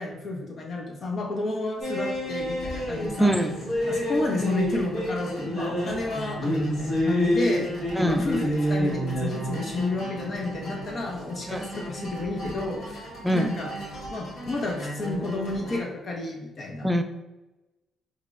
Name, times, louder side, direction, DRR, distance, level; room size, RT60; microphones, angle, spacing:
voice 1, 0.0-3.4 3.9-7.7 8.0-13.7 14.1-16.9, left 2 dB, 50° left, 0 dB, 0.5 m, -31 dB
sound 1, 1.8-15.8, equal, 70° left, 1.0 m, -30 dB
voice 2, 3.2-3.5 7.9-8.3 11.5-11.6 13.2-13.5 16.8-17.0, equal, 5° right, 5 dB, 0.3 m, -23 dB
4.7 x 2.0 x 2.3 m, 1.0 s
cardioid pair, 90°, 0 cm